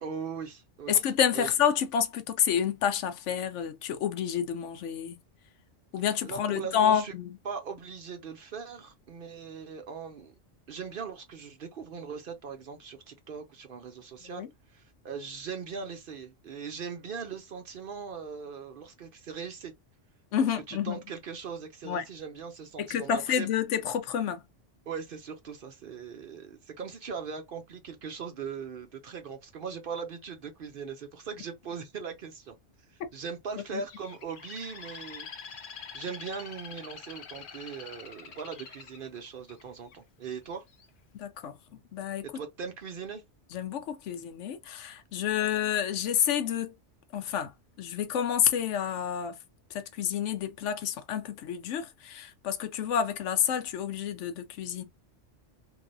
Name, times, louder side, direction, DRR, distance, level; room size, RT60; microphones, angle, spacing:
voice 1, 0.0-1.0 1.3-1.5 6.2-7.1 7.4-10.3 10.7-19.7 20.7-23.5 24.9-32.6 32.9-35.6 35.9-40.6 42.2-43.2, right 6 dB, 55° right, 0.7 m, -40 dB
voice 2, 0.9-5.2 5.9-7.3 14.3-14.5 20.3-21.0 21.8-22.0 22.9-24.4 41.2-41.5 41.9-42.2 43.5-46.7 47.1-47.5 47.8-49.3 49.7-54.8, left 9 dB, 75° left, 0.9 m, -29 dB
Bird, 33.9-39.9 40.5-40.9, left 6 dB, 50° left, 0.7 m, -45 dB
3.2 x 2.6 x 2.6 m
omnidirectional pair, 1.3 m